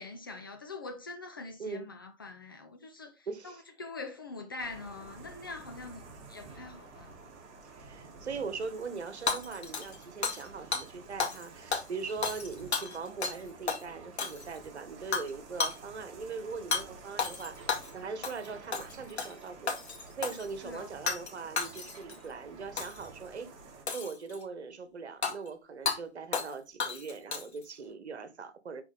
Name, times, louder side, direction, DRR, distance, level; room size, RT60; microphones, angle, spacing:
voice 1, 0.0-3.5 3.8-7.1 20.6-20.9, left 3 dB, 20° left, 0.4 m, -44 dB
voice 2, 1.6-1.9 3.3-3.6 7.6-19.7 20.2-23.5 23.9-28.8, right 4 dB, 70° right, 1.4 m, -41 dB
at the airport, 4.6-23.8, right 3 dB, 25° right, 3.3 m, -51 dB
Hammer / Shatter, 9.3-10.5 10.7-10.9 11.2-11.4 11.7-13.4 13.7-13.8 14.2-14.6 15.1-15.3 15.6-15.8 16.7-16.8 17.2-17.9 18.2-18.5 18.7-19.3 19.7-20.5 21.1-21.3 21.6-22.2 22.8-23.1 23.9-24.4 25.2-25.3 25.9-26.0 26.3-26.5 26.8-27.6, left 5 dB, 65° left, 2.2 m, -33 dB
6.1 x 5.0 x 3.6 m
figure-of-eight pair, 135°, 35 cm